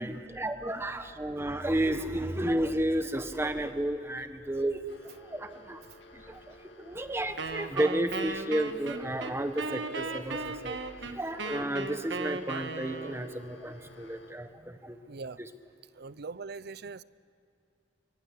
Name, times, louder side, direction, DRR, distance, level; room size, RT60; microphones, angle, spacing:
voice 1, 0.0-4.8 5.2-5.8 6.1-10.8 11.1-15.0 15.4-15.5, right 1 dB, 15° right, 8 dB, 1.3 m, -32 dB
sound 1, 4.9-14.3, left 1 dB, 90° left, 2.6 m, -53 dB
Wind instrument woodwind instrument, 7.4-13.4, right 3 dB, 75° right, 1.5 m, -37 dB
voice 2, 15.0-15.4 15.9-17.0, right 4 dB, 60° right, 18 dB, 0.6 m, -42 dB
25.0 x 22.5 x 8.5 m, 2.6 s
head